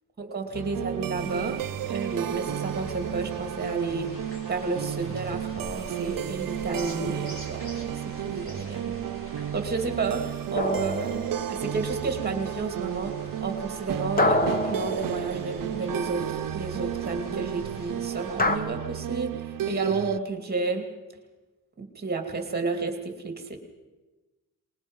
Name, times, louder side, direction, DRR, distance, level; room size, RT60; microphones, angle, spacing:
voice 1, 0.2-4.1 4.5-9.1 9.5-20.9 21.8-23.6, right 4 dB, 30° right, 5 dB, 2.6 m, -31 dB
sound 1, 0.5-20.2, right 11 dB, 90° right, 0.6 m, -33 dB
sound 2, 1.1-18.6, equal, 40° left, 4.2 m, -45 dB
sound 3, 10.6-11.8 14.2-15.8 18.4-18.6, left 2 dB, 25° left, 1.1 m, -27 dB
26.0 x 20.5 x 5.5 m, 1.2 s
wide cardioid pair, 175°, 32 cm